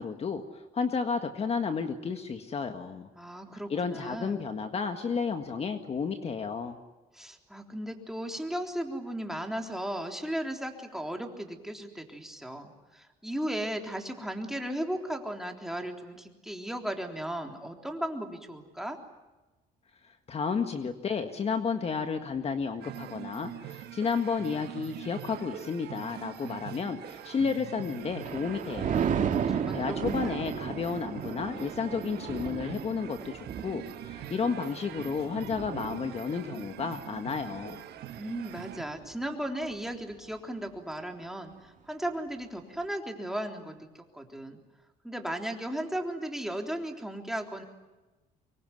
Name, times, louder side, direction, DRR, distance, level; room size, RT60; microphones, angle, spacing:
voice 1, 0.0-3.1 3.7-6.8 20.0-29.2 29.4-37.8, left 5 dB, 35° left, 7 dB, 1.7 m, -32 dB
voice 2, 3.2-4.5 7.1-19.0 29.5-30.0 30.2-30.3 38.2-44.6 45.0-47.6, right 1 dB, ahead, 3 dB, 3.6 m, -36 dB
sound 1, 22.8-38.8, right 12 dB, 75° right, 1.5 m, -44 dB
Thunder, 27.7-39.2 39.6-40.0, right 7 dB, 50° right, 2.4 m, -35 dB
25.0 x 23.0 x 9.5 m, 1.1 s
cardioid pair, 110°, 17 cm